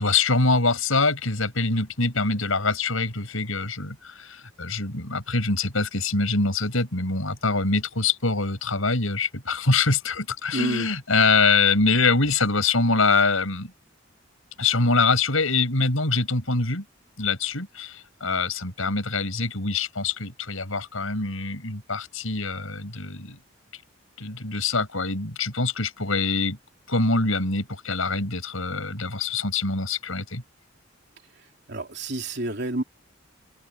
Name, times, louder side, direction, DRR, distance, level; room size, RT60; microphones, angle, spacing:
voice 1, 0.0-13.7 14.6-16.8 17.2-23.4 24.2-26.6 26.9-30.4, left 3 dB, 85° left, 6.1 m, -24 dB
voice 2, 10.5-10.9 31.7-32.8, right 2 dB, 55° right, 3.4 m, -29 dB
head